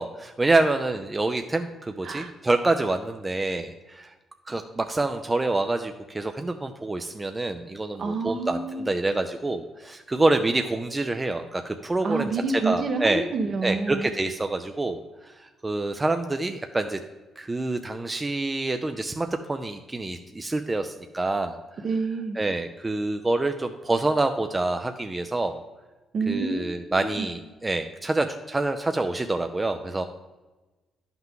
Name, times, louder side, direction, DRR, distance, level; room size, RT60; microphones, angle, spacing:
voice 1, 0.0-4.1 4.5-13.2 13.6-17.0 17.4-21.6 22.4-25.6 26.3-30.0, right 2 dB, 20° right, 6 dB, 0.5 m, -27 dB
voice 2, 8.0-8.9 12.0-14.1 21.8-22.4 26.1-26.6 26.9-27.3, right 3 dB, 55° right, 5 dB, 1.1 m, -28 dB
10.5 x 5.8 x 3.7 m, 1.2 s
cardioid pair, 90°, 0 cm